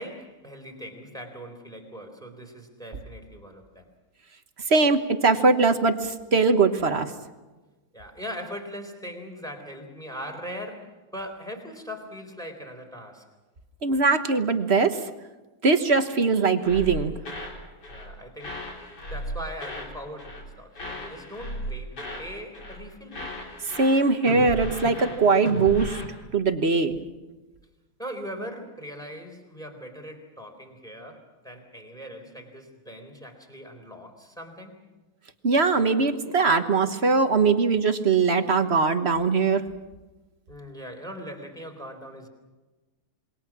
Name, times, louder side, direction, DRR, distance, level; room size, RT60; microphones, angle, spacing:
voice 1, 0.0-3.9 7.9-13.3 17.9-18.6 19.1-23.3 28.0-34.8 40.5-42.3, equal, ahead, 3 dB, 3.7 m, -40 dB
voice 2, 4.7-7.1 13.8-15.0 15.6-17.1 23.7-26.0 26.3-27.0 35.4-39.6, right 4 dB, 35° right, 8 dB, 1.2 m, -21 dB
sound 1, 16.6-17.6 17.8-18.1 18.4-19.9 20.2-20.5 20.7-22.3 22.5-22.8 23.1-26.1, equal, 50° left, 4.4 m, -35 dB
27.0 x 22.5 x 6.1 m, 1.2 s
omnidirectional pair, 2.3 m